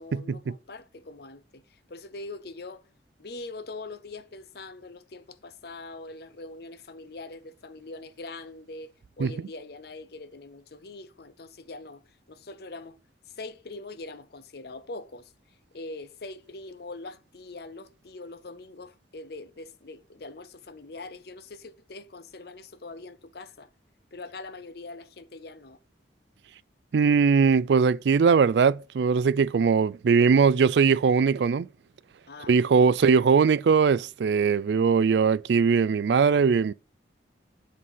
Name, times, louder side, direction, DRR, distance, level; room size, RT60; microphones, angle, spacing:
voice 1, 0.0-2.9 3.2-13.0 13.3-23.7 24.1-25.8 32.3-32.7, left 2 dB, 60° left, 0.7 m, -43 dB
voice 2, 26.9-31.7 32.5-36.7, right 5 dB, 70° right, 0.4 m, -21 dB
7.4 x 4.1 x 5.5 m
head